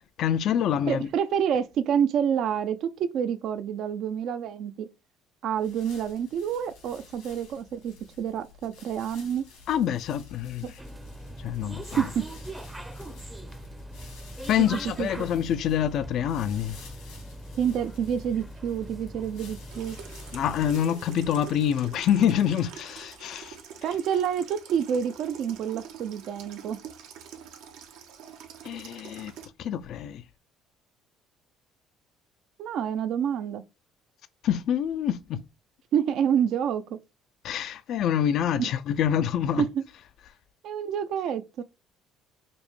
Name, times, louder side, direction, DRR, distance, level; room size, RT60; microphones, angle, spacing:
voice 1, 0.0-1.1 9.7-10.8 11.4-12.1 14.5-16.8 20.3-23.6 28.6-29.3 29.6-30.2 34.4-35.4 37.4-39.6, left 9 dB, 65° left, 0.4 m, -26 dB
voice 2, 0.9-4.9 5.4-9.5 10.6-10.7 12.0-12.3 14.6-15.3 17.5-20.0 23.8-26.8 32.6-33.6 35.9-36.8 38.6-38.7 39.6-39.8 40.6-41.6, right 8 dB, 65° right, 0.4 m, -28 dB
sound 1, 5.5-22.1, left 4 dB, 90° left, 2.1 m, -52 dB
sound 2, 10.8-20.8, right 1 dB, 10° right, 0.6 m, -41 dB
Water tap faucet / Sink (filling or washing), 19.7-29.5, right 7 dB, 80° right, 0.8 m, -46 dB
5.1 x 2.1 x 3.1 m
supercardioid pair, 85°, 0 cm